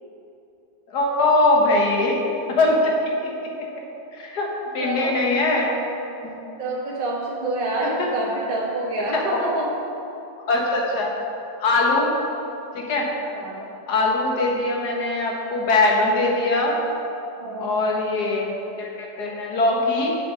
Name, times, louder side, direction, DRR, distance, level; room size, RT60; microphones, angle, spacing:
voice 1, 0.9-2.2 2.5-3.5 4.1-4.5 4.7-5.8 6.2-6.4 7.8-8.1 9.1-9.4 10.5-11.1 11.6-12.1 12.8-13.1 13.9-16.7 17.6-20.1, left 2 dB, 85° left, -1 dB, 2.0 m, -21 dB
voice 2, 4.8-5.2 6.6-9.7 13.3-13.7 17.4-17.8, right 2 dB, 35° right, -4 dB, 1.2 m, -27 dB
7.9 x 7.8 x 6.2 m, 2.9 s
omnidirectional pair, 1.7 m